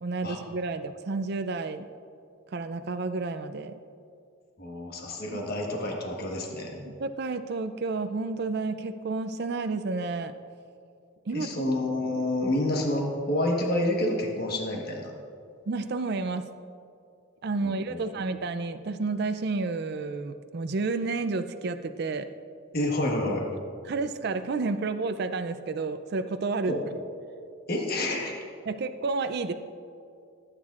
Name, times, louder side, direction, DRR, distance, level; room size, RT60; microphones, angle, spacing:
voice 1, 0.0-1.9 2.5-3.7 5.2-5.4 6.8-10.3 11.3-11.7 15.7-16.4 17.4-22.3 23.8-26.8 28.7-29.5, right 3 dB, 55° right, 9 dB, 0.4 m, -30 dB
voice 2, 4.6-6.8 11.3-15.1 17.6-18.0 22.7-23.4 26.7-26.8 27.7-28.4, left 1 dB, 50° left, 0 dB, 1.4 m, -28 dB
16.0 x 8.9 x 2.5 m, 2.4 s
head